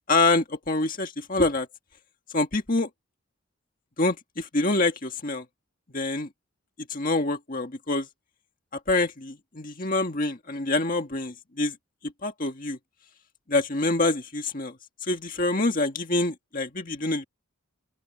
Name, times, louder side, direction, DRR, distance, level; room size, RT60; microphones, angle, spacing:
voice 1, 0.1-1.7 2.3-2.9 4.0-5.4 5.9-6.3 6.9-8.1 8.9-11.7 12.2-12.8 13.5-14.7 15.0-17.3, left 2 dB, 40° left, 1.8 m, -26 dB
open air
head